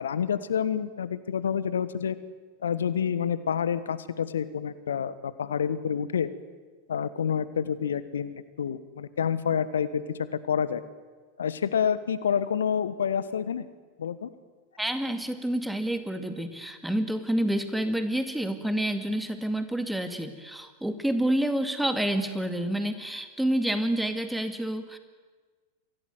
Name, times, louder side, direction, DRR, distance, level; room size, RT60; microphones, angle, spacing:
voice 1, 0.0-2.2 2.6-6.3 6.9-10.8 11.4-13.7 14.0-14.3, left 7 dB, 65° left, 15 dB, 1.3 m, -28 dB
voice 2, 14.8-25.0, right 1 dB, 5° right, 9 dB, 2.2 m, -28 dB
24.5 x 16.5 x 9.4 m, 1.4 s
figure-of-eight pair, 90°, 0 cm